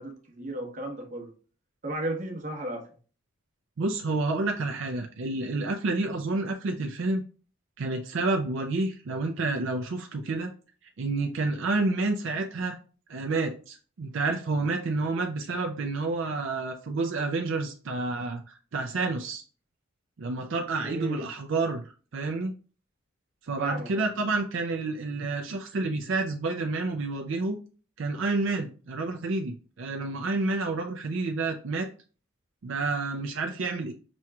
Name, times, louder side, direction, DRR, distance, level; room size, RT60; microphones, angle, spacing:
voice 1, 0.0-1.3 1.8-2.9 20.8-21.2 23.6-24.1, right 1 dB, 40° right, 0.9 m, -34 dB
voice 2, 3.8-7.2 7.8-10.5 11.0-12.8 13.1-19.4 20.2-22.5 23.5-27.6 28.0-31.9 32.6-33.9, right 3 dB, 70° right, 0.5 m, -29 dB
6.1 x 2.9 x 2.3 m
head